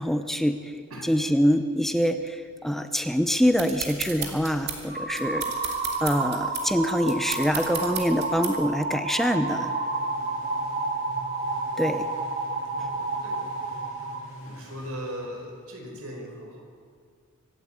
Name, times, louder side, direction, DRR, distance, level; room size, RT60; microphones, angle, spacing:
voice 1, 0.0-0.7 1.0-5.5 6.0-9.7 11.8-12.1, equal, ahead, 8 dB, 0.7 m, -25 dB
sound 1, 3.6-8.8, right 7 dB, 50° right, 2.7 m, -35 dB
sound 2, 4.9-14.2, right 3 dB, 35° right, 2.1 m, -30 dB
sound 3, 9.4-15.9, equal, 60° left, 6.7 m, -46 dB
voice 2, 12.7-14.0 14.4-16.6, equal, 90° right, 1 dB, 5.0 m, -40 dB
25.0 x 12.0 x 9.0 m, 2.1 s
head